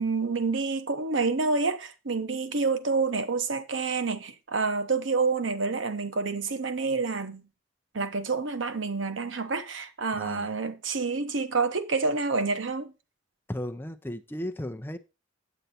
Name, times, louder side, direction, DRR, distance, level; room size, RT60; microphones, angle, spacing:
voice 1, 0.0-7.4 7.9-12.9, right 4 dB, 85° right, 0.9 m, -28 dB
voice 2, 10.2-10.5 13.5-15.0, left 1 dB, 10° left, 0.6 m, -35 dB
8.0 x 8.0 x 4.3 m
head